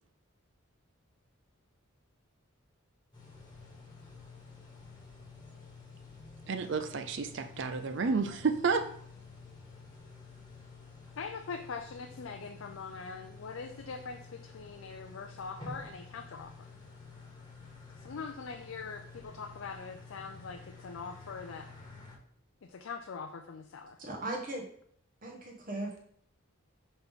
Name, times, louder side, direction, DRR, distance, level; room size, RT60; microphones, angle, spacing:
sound 1, 3.1-22.2, left 4 dB, 20° left, 1.4 m, -51 dB
voice 1, 6.5-9.0, right 4 dB, 55° right, 8 dB, 0.4 m, -31 dB
voice 2, 11.2-16.7 17.9-21.7 22.6-24.0, left 5 dB, 70° left, 5 dB, 0.5 m, -42 dB
voice 3, 24.0-24.6 25.2-26.0, right 2 dB, 40° right, 1 dB, 1.3 m, -38 dB
5.8 x 5.4 x 3.6 m, 0.63 s
head